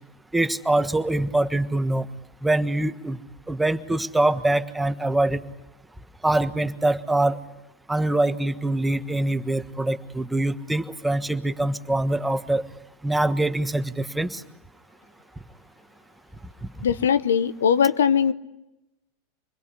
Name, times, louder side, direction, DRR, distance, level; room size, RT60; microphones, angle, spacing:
voice 1, 0.3-2.0 2.4-3.2 3.5-5.4 6.2-7.4 7.9-12.6 13.0-14.4, right 2 dB, 5° right, 10 dB, 1.4 m, -24 dB
voice 2, 16.8-18.3, left 7 dB, 80° left, 14 dB, 0.9 m, -20 dB
27.0 x 21.5 x 10.0 m, 0.96 s
hypercardioid pair, 95°, 0 cm